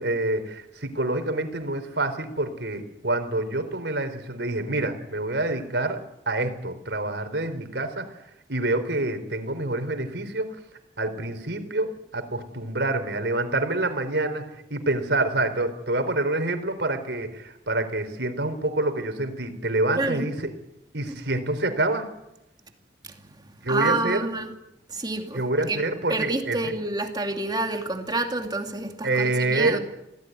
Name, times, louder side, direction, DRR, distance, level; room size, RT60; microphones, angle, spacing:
voice 1, 0.0-6.0 6.3-8.0 8.5-10.6 11.0-14.4 14.7-20.5 20.9-22.0 23.6-24.3 25.3-26.6 29.0-29.8, right 2 dB, 80° right, 8 dB, 4.1 m, -27 dB
voice 2, 20.0-20.3 23.0-23.1 23.4-24.5 24.9-25.8 26.1-29.8, right 2 dB, 25° right, 4 dB, 2.6 m, -28 dB
26.5 x 17.0 x 9.3 m, 0.87 s
head